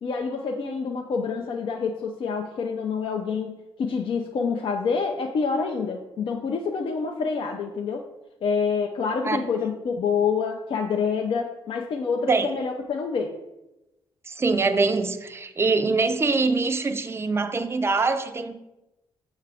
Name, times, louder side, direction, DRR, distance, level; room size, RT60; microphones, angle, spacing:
voice 1, 0.0-8.1 8.4-13.3, left 5 dB, 60° left, 2 dB, 0.4 m, -27 dB
voice 2, 14.3-18.5, right 3 dB, 25° right, 8 dB, 0.4 m, -23 dB
6.6 x 2.4 x 3.3 m, 0.96 s
cardioid pair, 65°, 10 cm